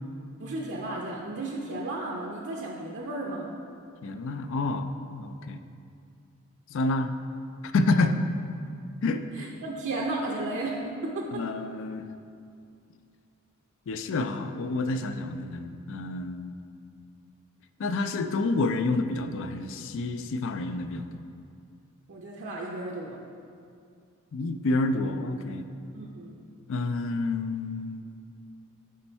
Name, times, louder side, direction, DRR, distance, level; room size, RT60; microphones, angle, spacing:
voice 1, 0.4-3.5 9.4-11.4 22.1-23.2 25.9-26.4, right 2 dB, 60° right, -2 dB, 0.6 m, -34 dB
voice 2, 4.0-5.6 6.7-7.1 7.6-8.2 9.0-9.5 11.3-12.1 13.9-16.6 17.8-21.2 24.3-25.6 26.7-28.0, left 2 dB, 65° left, 9 dB, 0.4 m, -29 dB
8.4 x 4.3 x 4.5 m, 2.4 s
head